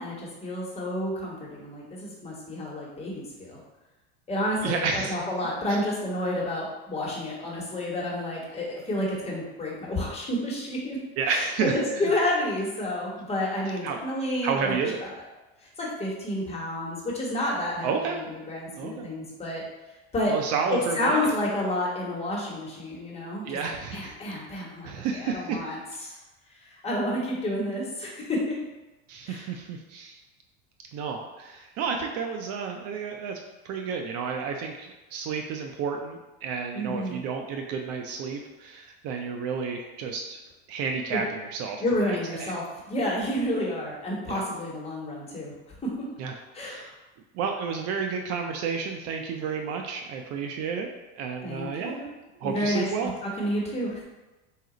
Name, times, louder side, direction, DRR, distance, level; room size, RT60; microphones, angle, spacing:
voice 1, 0.0-3.6 4.3-15.1 15.8-19.6 20.1-20.4 20.7-23.6 23.9-26.2 26.6-28.6 29.3-29.5 36.7-37.2 41.1-41.2 41.8-45.5 45.8-45.9 46.5-46.9 51.4-52.1 52.4-54.0, left 1 dB, 20° left, -4 dB, 1.2 m, -30 dB
voice 2, 4.6-5.1 11.2-12.0 13.8-14.1 14.4-15.0 17.8-18.2 18.8-19.1 20.3-21.3 23.4-24.2 24.6-25.6 29.1-30.2 30.9-40.4 40.7-41.8 42.1-42.5 44.3-44.4 46.2-46.4 46.6-46.9 47.3-50.9 51.2-52.0 52.4-53.1, right 5 dB, 50° right, 3 dB, 0.5 m, -31 dB
4.0 x 2.5 x 3.8 m, 1.1 s
supercardioid pair, 115°, 32 cm